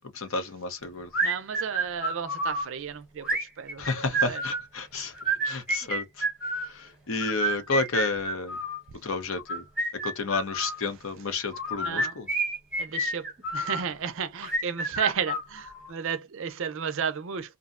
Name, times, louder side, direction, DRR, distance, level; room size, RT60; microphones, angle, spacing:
voice 1, 0.1-1.1 3.8-5.1 5.4-6.3 6.7-8.6 9.0-9.6 10.0-12.3, left 3 dB, 60° left, 0.7 m, -31 dB
sound 1, 1.1-2.6 3.2-4.7 5.1-6.7 7.2-8.8 9.4-10.8 11.5-13.8 14.4-15.9, right 2 dB, 5° right, 0.9 m, -29 dB
voice 2, 1.2-3.3 3.6-3.8 4.3-4.4 11.8-12.1 12.8-17.6, right 7 dB, 60° right, 0.4 m, -33 dB
2.6 x 2.1 x 2.4 m
head